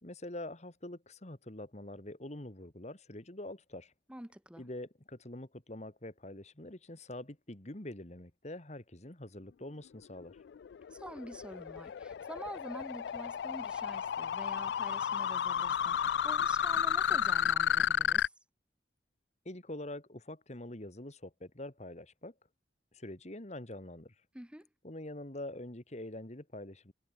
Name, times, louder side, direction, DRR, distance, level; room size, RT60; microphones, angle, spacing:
voice 1, 0.0-3.9 4.6-10.4 19.5-22.3 22.9-24.2 24.8-26.9, left 1 dB, 40° left, 2.2 m, -45 dB
voice 2, 4.1-4.6 10.9-18.3 24.3-24.7, right 1 dB, 5° right, 1.2 m, -47 dB
sound 1, 10.2-18.3, left 9 dB, 65° left, 0.3 m, -32 dB
head